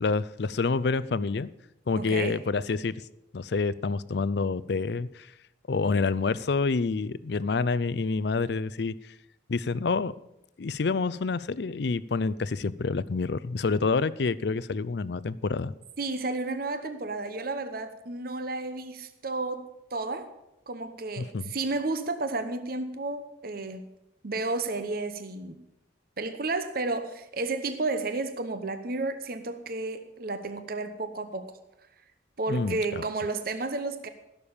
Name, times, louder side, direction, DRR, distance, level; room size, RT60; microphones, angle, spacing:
voice 1, 0.0-1.5 1.9-2.9 3.3-5.3 5.7-8.9 9.5-10.1 10.6-15.7 21.2-21.5 32.5-33.0, left 4 dB, 60° left, 16 dB, 0.5 m, -28 dB
voice 2, 2.0-2.4 16.0-19.6 19.9-20.3 20.7-23.9 24.2-25.6 26.2-31.5 32.4-34.1, right 3 dB, 50° right, 9 dB, 0.9 m, -32 dB
16.0 x 6.9 x 7.1 m, 0.89 s
head